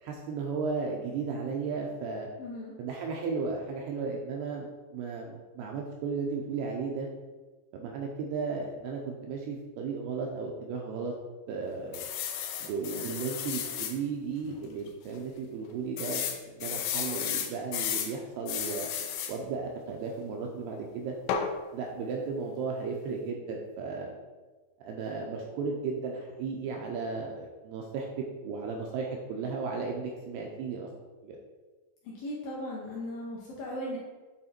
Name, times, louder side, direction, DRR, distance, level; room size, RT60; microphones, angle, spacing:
voice 1, 0.0-2.3 2.8-7.1 7.7-11.1 11.5-12.1 12.6-18.9 19.3-21.1 21.7-24.1 24.8-30.9 31.2-31.4, right 4 dB, 80° right, 0 dB, 2.4 m, -35 dB
voice 2, 2.4-2.7 32.2-34.0, left 1 dB, 70° left, -5 dB, 2.3 m, -37 dB
sound 1, 11.9-14.0 14.5-14.6 14.9-15.0 16.0-18.1 18.5-19.4 21.3-21.5, left 8 dB, 90° left, 3.1 m, -33 dB
8.8 x 3.5 x 4.3 m, 1.3 s
omnidirectional pair, 5.2 m